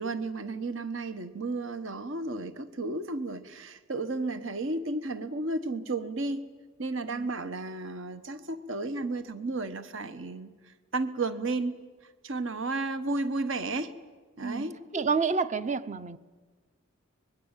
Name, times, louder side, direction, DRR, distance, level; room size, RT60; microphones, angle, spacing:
voice 1, 0.0-6.4 6.8-10.5 10.9-11.8 12.2-14.0 14.4-14.8, right 2 dB, 65° right, 1.2 m, -33 dB
voice 2, 14.9-16.2, right 5 dB, 35° right, 0.8 m, -29 dB
24.5 x 22.0 x 9.0 m
head